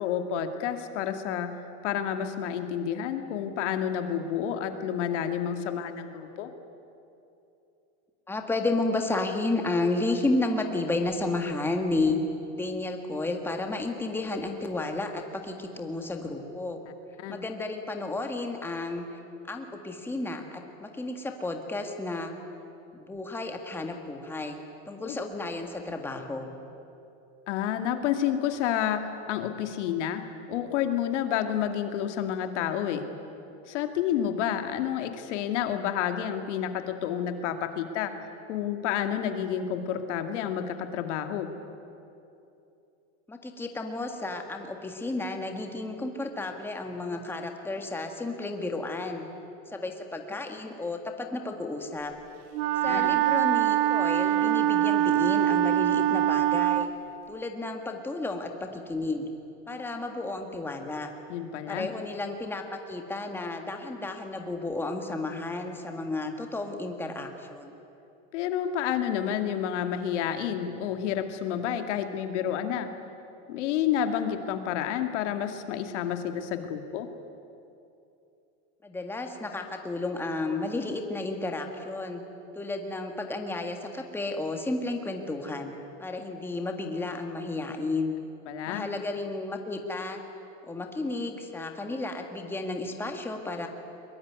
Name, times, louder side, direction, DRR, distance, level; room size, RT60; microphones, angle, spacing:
voice 1, 0.0-1.5 1.8-6.5 17.2-17.4 25.0-25.2 27.5-33.1 33.7-38.1 38.5-41.5 52.8-53.1 61.3-61.9 68.3-72.9 73.5-77.1 88.5-88.9, left 9 dB, 90° left, 6 dB, 2.4 m, -30 dB
voice 2, 8.3-12.2 12.5-16.8 17.3-19.1 19.5-22.3 22.9-26.5 43.3-49.3 49.7-52.1 52.8-56.9 57.3-59.3 59.7-61.1 61.7-67.7 78.8-82.2 82.5-88.2 88.7-90.2 90.7-93.7, left 2 dB, 5° left, 4 dB, 1.8 m, -32 dB
Wind instrument woodwind instrument, 52.5-56.9, right 12 dB, 45° right, 0.8 m, -24 dB
22.5 x 22.0 x 9.6 m, 2.7 s
supercardioid pair, 155°, 35 cm